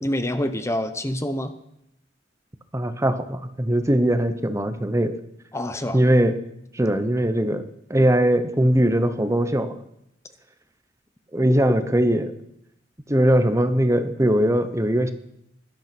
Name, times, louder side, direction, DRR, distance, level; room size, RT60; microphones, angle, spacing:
voice 1, 0.0-1.5 5.5-6.0, left 1 dB, 15° left, 10 dB, 0.8 m, -26 dB
voice 2, 2.7-5.2 5.9-6.4 6.7-7.6 7.9-9.8 11.3-12.3 13.1-15.1, right 1 dB, 15° right, 10 dB, 0.9 m, -20 dB
16.5 x 12.0 x 6.1 m, 0.79 s
head